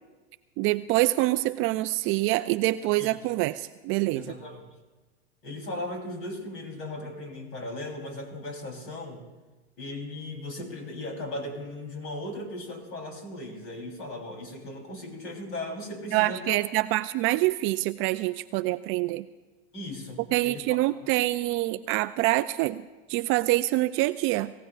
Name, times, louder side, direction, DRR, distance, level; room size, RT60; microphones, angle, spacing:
voice 1, 0.6-4.3 16.1-19.3 20.3-22.8 23.1-24.5, right 18 dB, 40° right, 13 dB, 0.4 m, -26 dB
voice 2, 4.1-4.6 5.4-9.2 9.8-16.6 19.7-20.6 21.0-21.1, left 1 dB, 40° left, 2 dB, 3.7 m, -37 dB
26.5 x 16.0 x 2.5 m, 1.2 s
hypercardioid pair, 105°, 31 cm